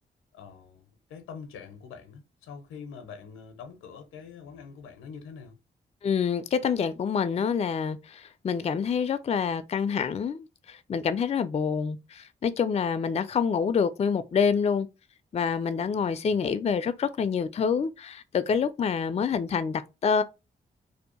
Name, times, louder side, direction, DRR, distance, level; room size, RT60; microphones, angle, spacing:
voice 1, 0.3-5.6, left 6 dB, 85° left, 0.5 m, -44 dB
voice 2, 6.0-14.9 15.3-20.2, left 6 dB, 30° left, 0.3 m, -27 dB
2.6 x 2.1 x 2.8 m
supercardioid pair, 40°, 21 cm